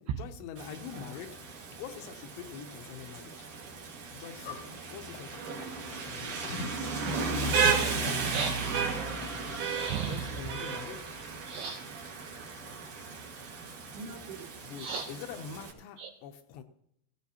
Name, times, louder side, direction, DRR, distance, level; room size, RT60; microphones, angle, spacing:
voice 1, 0.0-3.3 4.1-6.6 10.0-11.2 14.7-16.6, left 8 dB, 80° left, 2.8 m, -45 dB
Rain, 0.6-15.7, right 5 dB, 55° right, 2.6 m, -34 dB
Livestock farm animals working animals, 4.4-10.2, left 3 dB, 60° left, 1.7 m, -45 dB
voice 2, 7.6-8.0 8.3-8.6 9.7-10.4 11.5-11.8 14.8-15.1 16.0-16.1, right 6 dB, 85° right, 2.1 m, -35 dB
voice 3, 11.9-12.7 13.9-14.5, right 3 dB, 70° right, 4.0 m, -49 dB
16.5 x 16.0 x 2.8 m
omnidirectional pair, 5.2 m